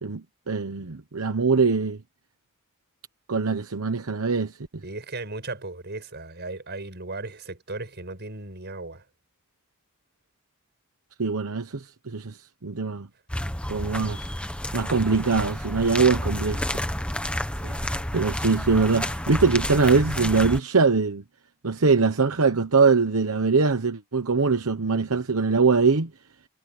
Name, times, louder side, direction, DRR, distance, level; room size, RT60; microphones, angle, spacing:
voice 1, 0.0-2.0 3.3-4.5 11.2-12.4 12.6-13.1 13.7-14.3 14.7-16.8 18.1-21.2 21.6-26.1, right 4 dB, 85° right, 1.0 m, -22 dB
voice 2, 4.8-9.0 17.6-18.0, right 2 dB, 55° right, 5.9 m, -36 dB
sound 1, 13.3-20.6, left 1 dB, 5° left, 1.4 m, -30 dB
head